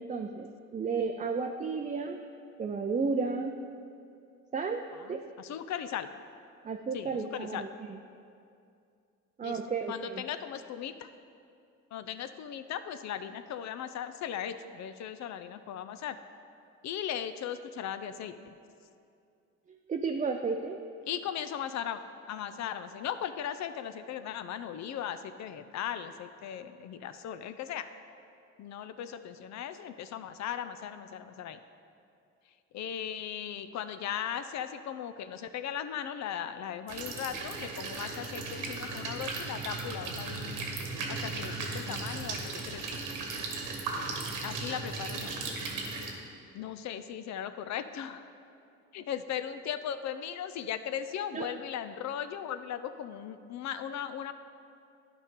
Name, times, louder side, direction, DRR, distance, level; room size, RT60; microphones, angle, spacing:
voice 1, 0.0-2.2 2.6-3.6 4.5-5.3 6.6-8.0 9.4-10.2 19.9-20.8 51.3-51.5, right 4 dB, 25° right, 3 dB, 0.4 m, -33 dB
voice 2, 4.9-6.1 6.9-7.7 9.4-9.6 9.9-11.1 11.9-16.2 16.8-18.5 21.0-22.0 22.3-27.9 28.6-31.6 32.7-40.6 41.1-42.8 44.4-45.3 46.5-48.3 48.9-54.3, left 9 dB, 65° left, 11 dB, 0.5 m, -38 dB
sound 1, 36.9-46.1, right 3 dB, 90° right, 1.3 m, -36 dB
11.5 x 5.0 x 3.7 m, 2.5 s
cardioid pair, 90°, 30 cm